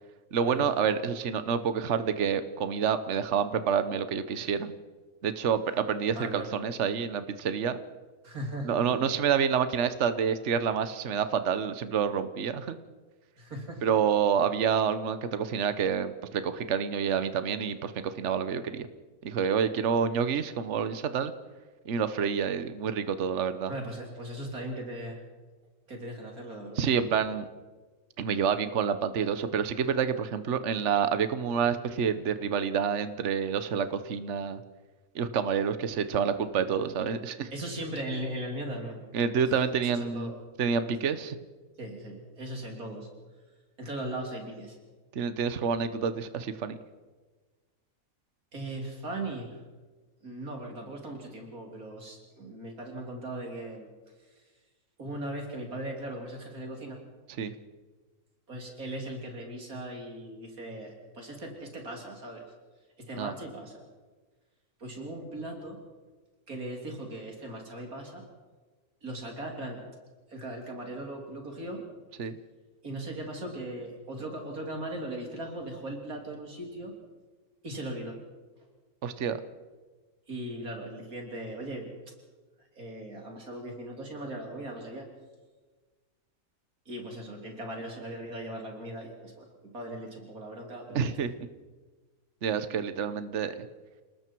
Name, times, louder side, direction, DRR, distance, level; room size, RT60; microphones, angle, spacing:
voice 1, 0.3-4.7 5.2-7.8 8.6-12.8 13.8-18.9 19.2-21.3 21.9-23.7 26.8-27.5 28.2-34.6 35.1-37.5 39.1-40.3 40.6-41.4 45.1-46.8 57.4-57.5 63.2-63.3 72.2-72.4 79.0-79.4 90.9-91.3 92.4-93.5, right 7 dB, 55° right, 11 dB, 1.3 m, -28 dB
voice 2, 6.2-6.5 8.2-8.9 13.4-13.9 23.7-25.2 25.9-26.8 37.5-39.3 39.8-40.4 41.1-41.2 41.8-43.1 43.8-44.8 48.5-49.6 50.2-53.9 55.0-57.0 58.5-62.5 63.0-63.8 64.8-65.8 66.5-68.2 69.0-69.8 70.3-71.8 72.8-76.9 77.6-78.2 80.3-81.9 82.7-85.1 86.9-91.2, right 1 dB, 75° right, 1 dB, 3.8 m, -38 dB
28.5 x 19.5 x 4.6 m, 1.3 s
omnidirectional pair, 1.5 m